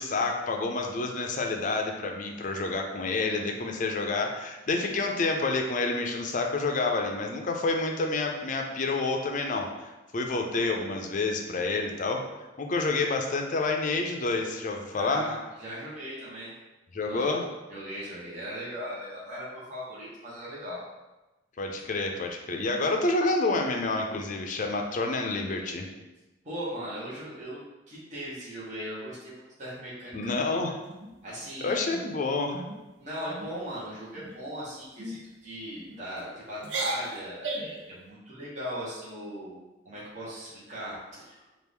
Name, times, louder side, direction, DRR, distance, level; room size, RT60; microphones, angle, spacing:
voice 1, 0.0-12.2 12.6-15.3 16.9-17.4 21.6-25.9 30.1-30.7 31.6-32.5, left 3 dB, 45° left, 3 dB, 0.5 m, -28 dB
voice 2, 14.9-16.5 17.0-17.3 17.7-20.8 26.4-30.6 31.2-31.7 33.0-39.6 39.8-41.4, equal, 40° right, -8 dB, 1.1 m, -39 dB
sound 1, 30.9-31.5 31.9-32.2 32.5-32.8 33.2-33.5 34.1-34.5 35.0-35.2 35.9-36.3 36.6-37.8, right 2 dB, 75° right, 0.6 m, -35 dB
4.6 x 2.5 x 3.5 m, 1.1 s
head